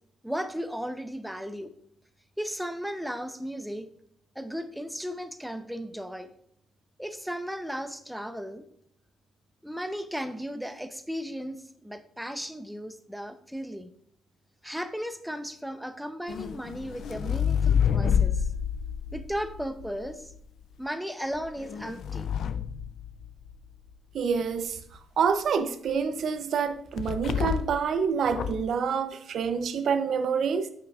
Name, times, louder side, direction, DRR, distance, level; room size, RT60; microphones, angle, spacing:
voice 1, 0.2-1.7 2.4-3.9 4.4-6.3 7.0-8.6 9.6-13.9 14.6-18.5 19.1-20.3 20.8-22.3, equal, ahead, 0.7 m, -35 dB
sound 1, 16.3-20.4 21.3-23.7 27.0-27.9 28.3-28.7, left 8 dB, 65° left, 0.4 m, -28 dB
voice 2, 24.1-24.8 25.2-30.7, right 6 dB, 65° right, 0.6 m, -27 dB
8.3 x 6.0 x 2.4 m
cardioid pair, 90°, 0 cm